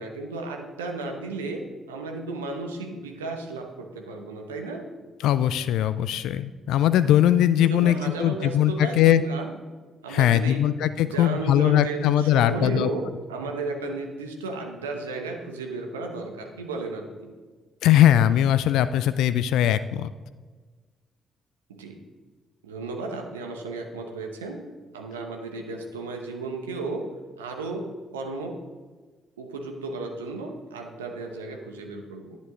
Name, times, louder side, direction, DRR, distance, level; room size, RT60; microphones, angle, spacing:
voice 1, 0.0-4.9 7.6-9.5 10.0-10.7 11.0-17.3 21.7-22.0 22.6-28.6 29.4-32.4, right 3 dB, 85° right, 3 dB, 1.0 m, -34 dB
voice 2, 5.2-9.2 10.1-12.9 17.8-20.1, left 11 dB, 70° left, 13 dB, 0.3 m, -20 dB
10.5 x 9.6 x 3.7 m, 1.4 s
figure-of-eight pair, 45°, 0 cm